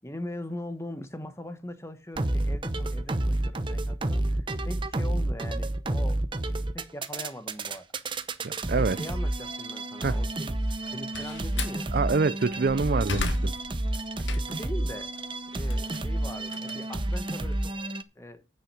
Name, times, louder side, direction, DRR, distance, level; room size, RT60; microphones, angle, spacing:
voice 1, 0.0-7.9 8.7-10.6 10.9-11.9 14.2-15.1 15.5-17.8 18.2-18.4, left 1 dB, 15° left, 1.3 m, -41 dB
sound 1, 2.2-18.0, right 1 dB, 25° right, 0.8 m, -30 dB
voice 2, 8.4-9.0 10.0-10.2 11.9-13.5, right 4 dB, 55° right, 0.5 m, -26 dB
Slam, 10.7-11.8 12.4-14.7 15.2-17.5, left 3 dB, 80° left, 1.7 m, -36 dB
9.6 x 5.8 x 8.3 m
head